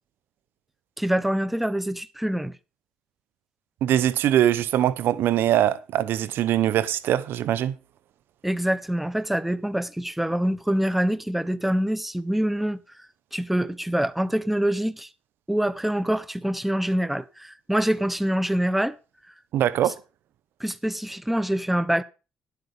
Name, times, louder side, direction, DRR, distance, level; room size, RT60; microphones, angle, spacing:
voice 1, 1.0-2.5 8.4-12.8 13.3-15.1 15.5-19.0 20.6-22.0, right 1 dB, 5° right, 0.7 m, -25 dB
voice 2, 3.8-7.8 19.5-19.9, right 11 dB, 75° right, 0.8 m, -22 dB
11.0 x 8.3 x 5.1 m
cardioid pair, 80°, 4 cm